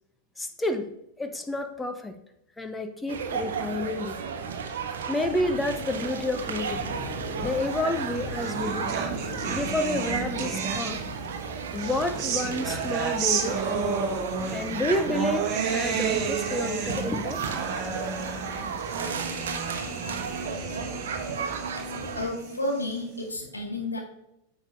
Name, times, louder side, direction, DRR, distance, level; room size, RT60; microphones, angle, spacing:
voice 1, 0.4-0.9 1.2-2.2 2.6-4.2 5.1-6.9 7.4-9.0 9.5-11.0 11.7-14.0 14.5-17.5, left 1 dB, 10° left, 7 dB, 0.7 m, -30 dB
sound 1, 3.1-22.3, right 6 dB, 60° right, 1.0 m, -34 dB
sound 2, 5.5-20.5, left 2 dB, 25° left, 2.3 m, -43 dB
sound 3, 7.8-11.3 11.7-23.2, right 6 dB, 40° right, 1.3 m, -32 dB
voice 2, 22.1-24.0, left 1 dB, 80° left, 1 dB, 1.9 m, -31 dB
10.0 x 7.1 x 2.6 m, 0.82 s
figure-of-eight pair, 90°, 0 cm